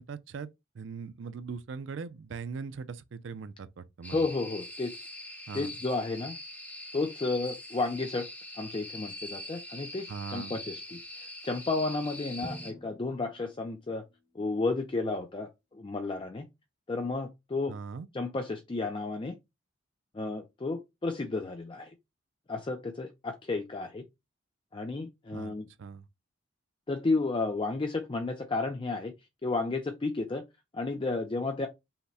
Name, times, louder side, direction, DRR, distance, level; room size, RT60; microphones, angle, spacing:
voice 1, 0.0-4.2 5.5-5.7 10.1-10.6 17.7-18.1 25.3-26.1, right 5 dB, 65° right, 0.4 m, -40 dB
sound 1, 4.0-12.7, left 1 dB, 10° left, 0.8 m, -43 dB
voice 2, 4.1-4.9 5.5-6.4 6.9-8.3 8.6-14.0 14.4-16.5 16.9-17.7 18.1-19.3 20.1-21.9 22.5-24.0 24.7-25.6 26.9-29.1 29.4-30.4 30.7-31.7, left 3 dB, 25° left, 0.4 m, -32 dB
Drum, 12.4-14.3, equal, 45° left, 1.1 m, -47 dB
5.7 x 2.1 x 4.1 m
head